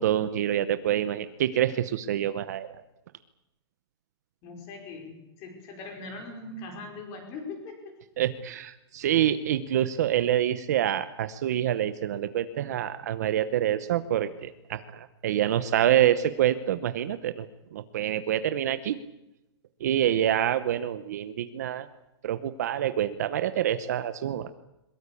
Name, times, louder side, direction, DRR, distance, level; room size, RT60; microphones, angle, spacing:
voice 1, 0.0-2.7 8.2-19.0 19.8-21.9 22.2-24.5, right 11 dB, 40° right, 12 dB, 0.9 m, -26 dB
voice 2, 4.4-8.0, left 3 dB, 20° left, 4 dB, 5.1 m, -41 dB
22.5 x 22.0 x 8.5 m, 0.93 s
hypercardioid pair, 180°, 14 cm